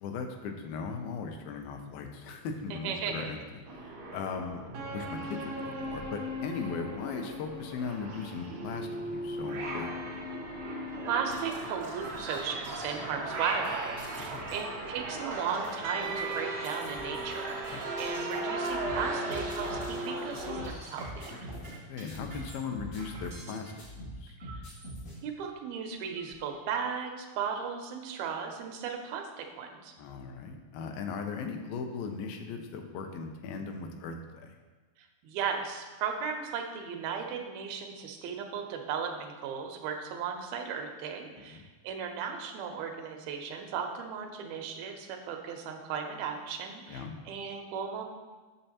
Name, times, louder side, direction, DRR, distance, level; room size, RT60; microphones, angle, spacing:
voice 1, 0.0-3.4 3.8-4.6 4.9-10.0 14.2-14.5 17.7-17.9 21.6-24.4 30.0-34.5 41.5-41.7 46.9-47.2, left 5 dB, 85° left, 4 dB, 2.4 m, -38 dB
voice 2, 2.7-3.3 11.1-21.3 24.4-24.5 25.2-29.9 35.2-48.1, right 6 dB, 90° right, 4 dB, 2.6 m, -36 dB
sound 1, 3.7-20.7, right 1 dB, 65° right, 1.8 m, -37 dB
sound 2, 10.9-23.7 24.4-24.9 25.5-25.6 25.9-26.5, right 1 dB, 35° right, 1.0 m, -47 dB
sound 3, 18.6-20.0 20.3-21.7 22.1-23.5 23.8-25.2, equal, 55° left, 3.5 m, -43 dB
8.6 x 7.0 x 2.9 m, 1.3 s
omnidirectional pair, 4.2 m